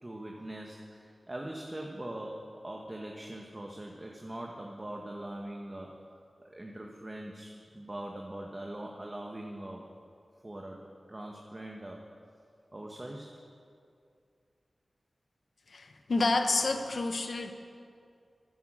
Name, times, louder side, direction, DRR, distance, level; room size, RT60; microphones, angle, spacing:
voice 1, 0.0-6.0 6.4-9.9 10.4-12.0 12.7-13.3, right 1 dB, 30° right, 0 dB, 1.4 m, -42 dB
voice 2, 15.7-17.5, left 3 dB, 75° left, 6 dB, 1.1 m, -29 dB
11.5 x 11.0 x 7.6 m, 2.4 s
cardioid pair, 45°, 0 cm